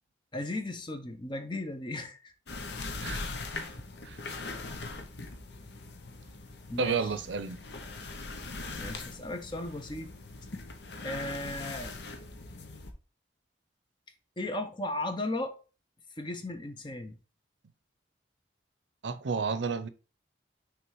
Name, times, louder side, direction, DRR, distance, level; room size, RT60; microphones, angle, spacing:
voice 1, 0.3-2.3 6.7-7.1 8.8-10.1 11.0-11.9 14.4-15.6 16.2-17.2, left 2 dB, 25° left, 0.8 m, -36 dB
sound 1, 2.5-12.9, left 3 dB, 65° left, 0.9 m, -41 dB
voice 2, 6.8-7.6 19.0-19.9, right 5 dB, 80° right, 0.6 m, -31 dB
6.1 x 3.4 x 4.7 m
head